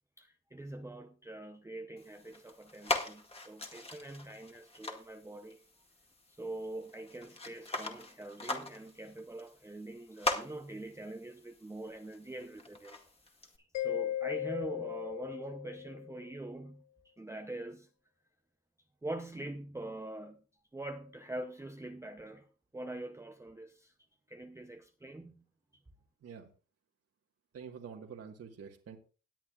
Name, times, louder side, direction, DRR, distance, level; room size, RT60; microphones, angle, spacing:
voice 1, 0.2-5.6 6.3-13.0 13.6-17.9 19.0-20.4 20.7-22.5 22.7-23.9 24.3-25.4, right 2 dB, 10° right, 0.7 m, -44 dB
sound 1, 2.0-13.6, left 2 dB, 20° left, 2.0 m, -41 dB
Mallet percussion, 13.7-16.3, left 12 dB, 65° left, 0.5 m, -37 dB
voice 2, 26.2-26.5 27.5-29.0, right 7 dB, 50° right, 1.6 m, -47 dB
18.0 x 9.2 x 2.4 m
cardioid pair, 90°, 30 cm